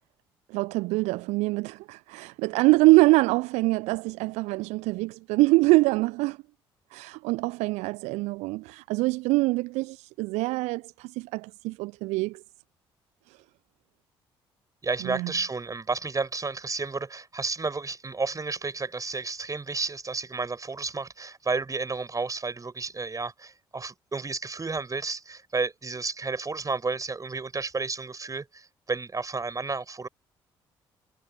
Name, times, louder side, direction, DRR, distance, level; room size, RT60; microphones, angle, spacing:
voice 1, 0.5-6.4 6.9-12.4 13.3-13.4 15.0-15.3, right 23 dB, 60° right, 0.7 m, -24 dB
voice 2, 14.8-30.1, right 4 dB, 25° right, 7.3 m, -32 dB
figure-of-eight pair, 45°, 13 cm